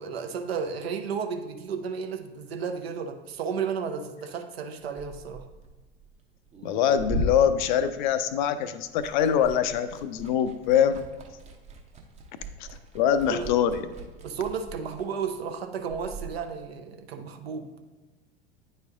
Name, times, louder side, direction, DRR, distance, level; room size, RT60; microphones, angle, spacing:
voice 1, 0.0-5.5 13.3-13.6 14.2-17.7, right 6 dB, 65° right, 6 dB, 0.7 m, -33 dB
Liquid, 4.8-8.5 8.8-16.4, right 1 dB, 20° right, 0.7 m, -38 dB
voice 2, 6.6-11.0 12.6-12.7 12.9-13.9, left 9 dB, 45° left, 11 dB, 0.4 m, -24 dB
9.4 x 4.3 x 2.4 m, 1.2 s
figure-of-eight pair, 80°, 32 cm